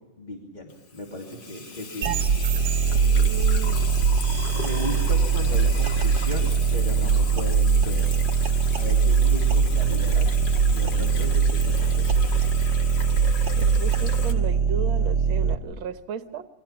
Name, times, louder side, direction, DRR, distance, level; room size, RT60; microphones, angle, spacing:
voice 1, 0.2-2.2 2.5-2.7 4.5-8.1 8.7-10.3 10.7-12.1, equal, 20° left, -1 dB, 2.8 m, -36 dB
Water tap faucet / Sink (filling or washing), 0.7-14.3, left 4 dB, 60° left, 2.5 m, -37 dB
sound 1, 2.0-15.5, right 5 dB, 55° right, 1.6 m, -21 dB
voice 2, 3.0-3.8 13.6-16.5, right 7 dB, 70° right, 9 dB, 1.9 m, -35 dB
28.5 x 23.5 x 5.8 m, 1.1 s
omnidirectional pair, 2.3 m